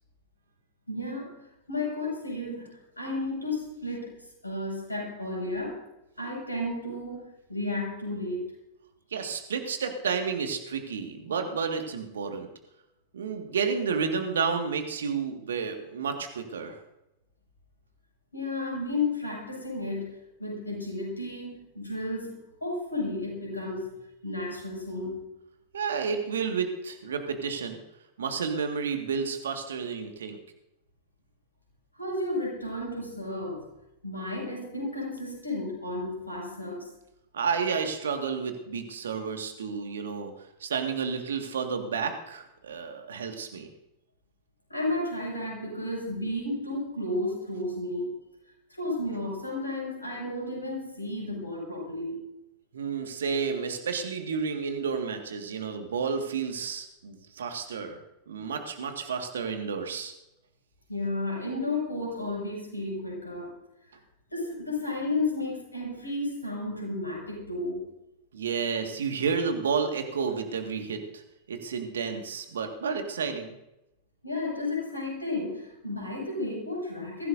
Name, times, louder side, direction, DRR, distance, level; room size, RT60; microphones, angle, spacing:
voice 1, 0.9-1.4 1.7-4.2 4.4-5.8 6.2-8.5 18.3-24.0 24.2-25.2 31.9-33.6 34.0-36.9 44.7-48.1 48.7-52.2 60.9-63.5 64.3-67.9 74.2-77.3, left 2 dB, 80° left, -1 dB, 6.5 m, -33 dB
voice 2, 9.1-12.5 13.1-16.8 25.7-27.8 28.2-30.4 37.3-43.7 52.7-58.0 58.3-60.1 68.3-71.2 71.5-73.5, right 6 dB, 65° right, 5 dB, 1.9 m, -31 dB
22.5 x 16.0 x 2.7 m, 0.91 s
figure-of-eight pair, 90°, 0 cm